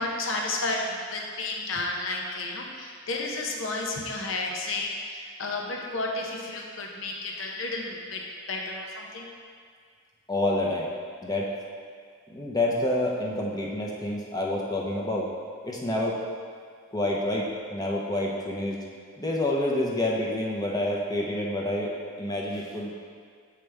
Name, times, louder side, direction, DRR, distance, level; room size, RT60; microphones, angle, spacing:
voice 1, 0.0-9.3, left 2 dB, 70° left, 0 dB, 0.8 m, -32 dB
voice 2, 10.3-10.9 11.2-11.5 12.3-15.3 15.6-16.2 16.9-18.8 19.2-22.9, left 1 dB, 20° left, -3 dB, 0.7 m, -28 dB
7.0 x 5.0 x 3.3 m, 2.1 s
head